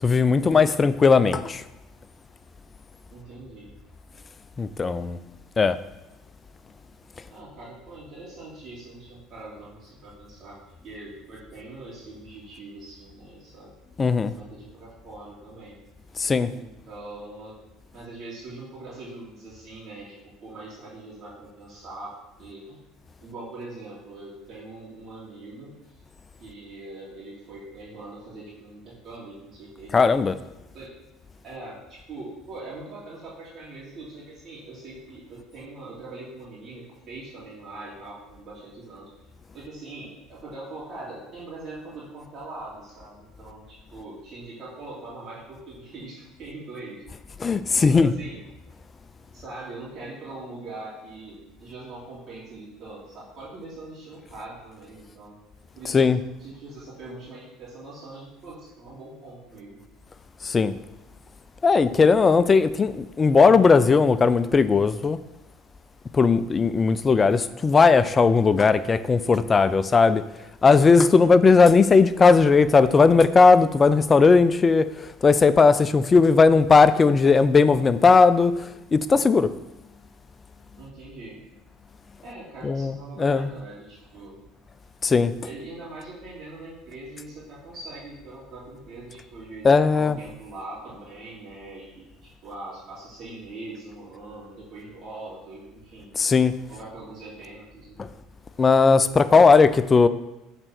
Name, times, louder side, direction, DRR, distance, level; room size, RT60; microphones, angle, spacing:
voice 1, 0.0-1.6 4.6-5.2 5.6-5.8 14.0-14.3 16.2-16.5 29.9-30.3 47.4-48.1 55.9-56.2 60.4-60.7 61.6-65.2 66.1-70.2 70.6-79.5 82.6-83.5 85.0-85.3 89.6-90.2 96.2-96.5 98.0-98.1 98.6-100.1, left 4 dB, 30° left, 0.4 m, -17 dB
voice 2, 3.1-3.7 7.3-10.6 10.8-13.7 14.3-15.8 16.5-17.6 17.9-22.1 22.4-22.8 23.2-26.0 26.4-30.1 30.7-30.9 31.4-39.1 39.5-47.0 47.7-48.4 49.3-55.4 55.7-56.1 56.4-59.8 71.1-71.4 80.8-81.4 82.2-84.4 85.4-96.1 96.7-98.2, right 2 dB, 45° right, 3.0 m, -42 dB
6.6 x 4.5 x 6.0 m
supercardioid pair, 85°, 0 cm